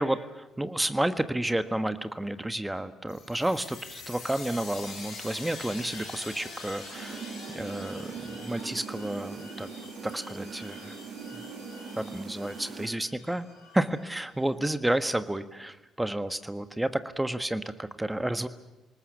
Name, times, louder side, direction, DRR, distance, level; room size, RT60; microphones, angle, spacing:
voice 1, 0.0-7.2 7.5-9.7 10.0-10.9 11.3-11.4 12.0-13.5 13.7-18.5, right 1 dB, 10° right, 12 dB, 1.5 m, -31 dB
sound 1, 3.1-14.5, left 3 dB, 60° left, 7.4 m, -45 dB
sound 2, 6.9-12.9, right 5 dB, 55° right, 3.4 m, -41 dB
28.5 x 19.5 x 7.1 m, 1.1 s
figure-of-eight pair, 45°, 0 cm